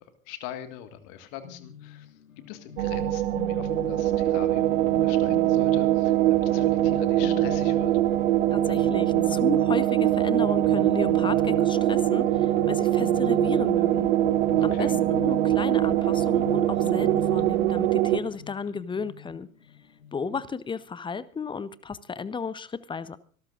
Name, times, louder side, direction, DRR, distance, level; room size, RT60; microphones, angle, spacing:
voice 1, 0.3-2.1 2.5-7.9 14.7-14.9, left 10 dB, 50° left, 9 dB, 1.8 m, -42 dB
sound 1, 1.3-20.5, left 9 dB, 75° left, 1.3 m, -41 dB
sound 2, 2.8-18.2, right 13 dB, 60° right, 0.9 m, -23 dB
voice 2, 8.5-14.1 14.6-19.5 20.1-23.2, left 5 dB, 10° left, 18 dB, 0.7 m, -34 dB
25.5 x 13.0 x 2.5 m, 0.43 s
figure-of-eight pair, 75°, 41 cm